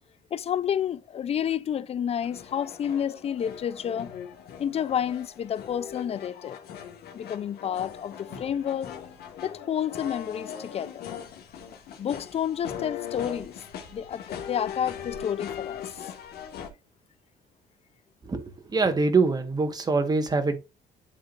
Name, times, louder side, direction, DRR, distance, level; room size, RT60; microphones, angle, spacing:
voice 1, 0.3-4.1 4.6-6.6 7.1-8.9 9.4-11.0 12.0-13.6 13.9-16.1, left 9 dB, 35° left, 0.4 m, -30 dB
sound 1, 2.2-16.7, left 8 dB, 70° left, 1.4 m, -40 dB
voice 2, 18.7-20.6, right 4 dB, 25° right, 1.3 m, -24 dB
10.5 x 3.6 x 2.4 m
cardioid pair, 110°, 17 cm